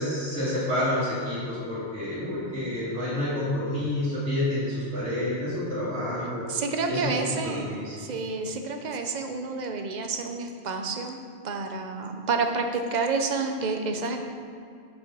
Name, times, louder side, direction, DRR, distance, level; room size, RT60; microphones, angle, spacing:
voice 1, 0.0-6.5 6.9-8.0, left 1 dB, 85° right, -11 dB, 2.5 m, -29 dB
voice 2, 6.5-7.7 8.0-11.2 11.4-14.3, right 4 dB, 45° right, 5 dB, 0.6 m, -29 dB
6.5 x 5.9 x 5.3 m, 2.5 s
omnidirectional pair, 1.3 m